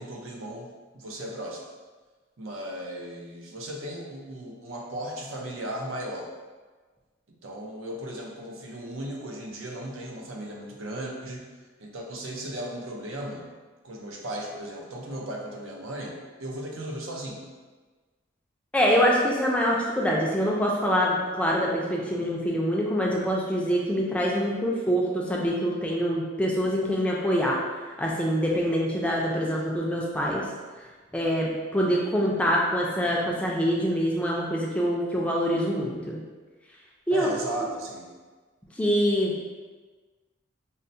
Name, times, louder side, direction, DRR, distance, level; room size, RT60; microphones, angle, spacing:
voice 1, 0.0-1.6 2.4-6.3 7.3-11.5 11.8-13.5 13.8-17.5 37.1-38.1, right 1 dB, 90° right, 0 dB, 0.6 m, -36 dB
voice 2, 18.7-27.6 28.0-30.4 31.1-36.2 37.1-37.3 38.8-39.3, equal, 5° left, -3 dB, 0.4 m, -25 dB
5.4 x 2.1 x 2.6 m, 1.3 s
head